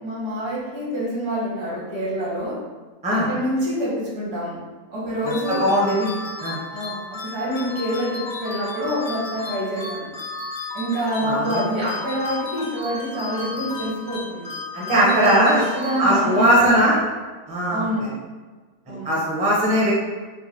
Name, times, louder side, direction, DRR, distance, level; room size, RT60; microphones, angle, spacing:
voice 1, 0.0-2.5 3.1-4.6 4.9-6.1 6.7-10.1 10.7-14.5 14.9-16.9 17.7-18.1 18.9-19.1, equal, 80° right, -7 dB, 1.9 m, -26 dB
voice 2, 5.2-6.1 6.4-6.6 11.2-11.6 14.7-15.6 16.0-17.0 17.5-17.8 18.9-19.9, equal, 5° right, -6 dB, 0.5 m, -19 dB
sound 1, 5.3-16.5, left 2 dB, 55° left, 0.5 m, -34 dB
4.6 x 2.2 x 3.0 m, 1.4 s
omnidirectional pair, 1.7 m